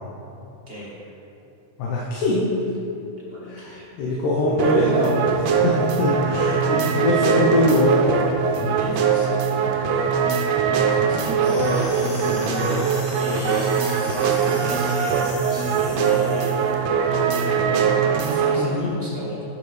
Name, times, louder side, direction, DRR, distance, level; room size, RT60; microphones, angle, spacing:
voice 1, 1.8-2.5 3.5-8.2 11.2-12.9 18.6-18.9, left 1 dB, 80° left, -4 dB, 2.4 m, -23 dB
voice 2, 3.3-4.1 8.8-10.1 10.8-11.9 13.1-13.7 14.4-16.7 17.0-19.4, left 1 dB, 25° right, -7 dB, 1.3 m, -36 dB
sound 1, 4.6-18.6, right 6 dB, 75° right, 1.7 m, -22 dB
sound 2, 11.4-16.8, left 2 dB, 60° left, 3.3 m, -39 dB
11.5 x 7.0 x 3.3 m, 2.9 s
omnidirectional pair, 3.6 m